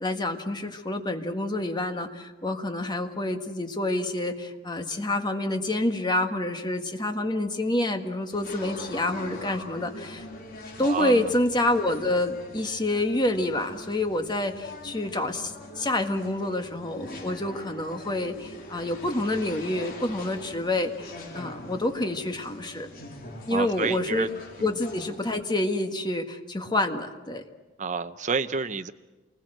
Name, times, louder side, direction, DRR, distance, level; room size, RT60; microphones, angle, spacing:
voice 1, 0.0-10.2 10.8-22.9 23.5-24.3 24.6-27.4, left 1 dB, 25° left, 5 dB, 1.7 m, -28 dB
sound 1, 8.3-25.2, left 2 dB, 50° left, 3.8 m, -43 dB
voice 2, 10.8-11.3 23.5-24.3 24.6-24.8 27.8-28.9, right 4 dB, 40° right, 9 dB, 0.7 m, -29 dB
27.5 x 20.5 x 7.9 m, 1.2 s
head